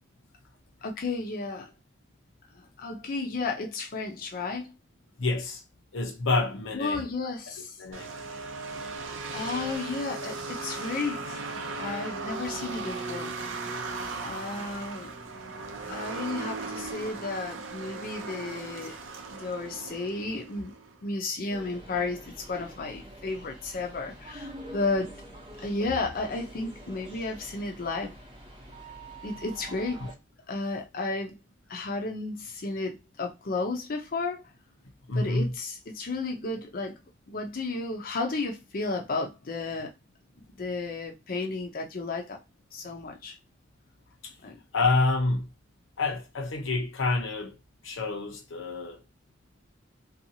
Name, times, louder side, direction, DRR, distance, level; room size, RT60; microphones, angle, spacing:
voice 1, 0.8-1.7 2.5-4.7 6.7-7.8 9.3-11.5 11.8-13.3 14.2-15.1 15.9-19.0 19.3-20.7 21.0-25.1 25.6-28.1 29.2-30.0 30.5-31.4 31.7-34.4 35.1-37.0 37.3-39.9 40.4-42.4 42.7-43.4 44.4-44.6, left 3 dB, 45° left, 0.5 m, -33 dB
voice 2, 5.2-5.6 5.9-7.0 7.8-8.1 30.0-30.1 35.1-35.5 44.2-44.3 44.7-45.5 46.0-47.6 47.8-49.0, left 3 dB, 90° left, 0.7 m, -28 dB
sound 1, 7.9-21.0, right 3 dB, 80° right, 0.5 m, -37 dB
sound 2, 21.5-30.1, right 1 dB, 25° right, 0.6 m, -46 dB
2.7 x 2.3 x 2.7 m
head